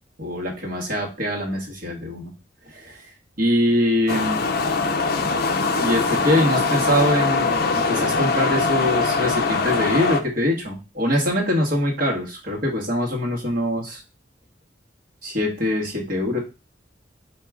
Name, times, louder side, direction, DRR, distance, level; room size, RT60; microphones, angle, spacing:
voice 1, 0.2-2.3 2.7-3.0 3.4-4.4 5.8-14.0 15.2-16.4, left 1 dB, 50° right, -3 dB, 1.4 m, -23 dB
sound 1, 4.1-10.2, left 4 dB, 55° left, 0.5 m, -22 dB
4.6 x 2.8 x 3.6 m, 0.30 s
head